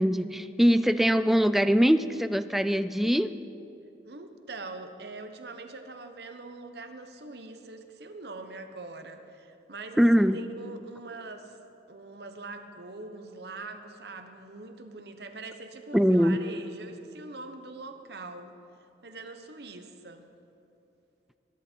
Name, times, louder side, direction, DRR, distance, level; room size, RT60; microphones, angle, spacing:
voice 1, 0.0-3.3 10.0-10.4 15.9-16.4, equal, ahead, 12 dB, 0.3 m, -22 dB
voice 2, 4.0-11.6 11.9-18.6 19.0-20.3, right 3 dB, 65° right, 7 dB, 1.1 m, -43 dB
21.5 x 11.5 x 4.6 m, 2.8 s
head